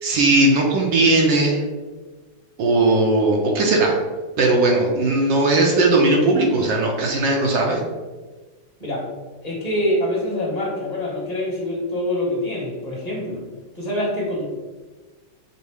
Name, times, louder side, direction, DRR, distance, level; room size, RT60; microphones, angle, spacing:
voice 1, 0.0-1.6 2.6-3.9 4.4-7.8, right 2 dB, 75° right, 0 dB, 1.3 m, -18 dB
voice 2, 9.4-13.4 13.7-14.5, left 1 dB, 25° left, -5 dB, 1.0 m, -25 dB
5.4 x 2.1 x 4.7 m, 1.3 s
omnidirectional pair, 2.1 m